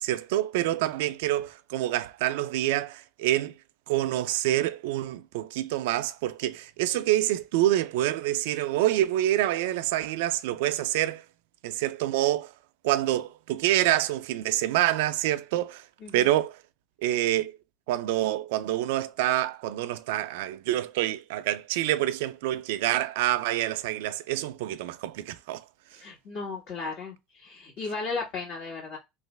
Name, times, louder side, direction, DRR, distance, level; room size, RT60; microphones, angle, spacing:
voice 1, 0.0-3.5 3.9-11.2 11.6-12.5 12.8-15.8 16.1-16.6 17.0-17.6 17.9-25.6, right 14 dB, 80° right, 0.4 m, -27 dB
voice 2, 16.0-16.3 25.9-29.0, left 4 dB, 60° left, 1.8 m, -35 dB
3.2 x 2.5 x 3.2 m
supercardioid pair, 110°, 0 cm